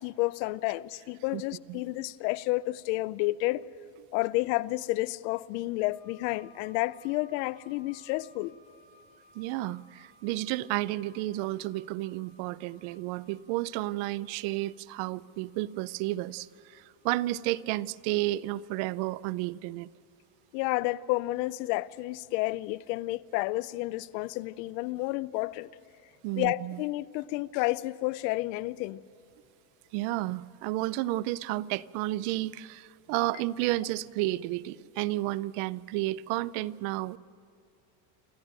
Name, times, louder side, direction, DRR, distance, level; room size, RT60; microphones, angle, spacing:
voice 1, 0.0-3.6 4.1-8.5 20.5-25.7 26.4-29.0, left 19 dB, 85° left, 0.7 m, -30 dB
sound 1, 5.9-20.8 21.6-21.7, left 2 dB, 35° left, 7.5 m, -63 dB
voice 2, 9.3-19.9 26.2-26.8 29.9-37.2, right 17 dB, 75° right, 0.7 m, -32 dB
27.5 x 13.5 x 8.9 m
cardioid pair, 135°, 49 cm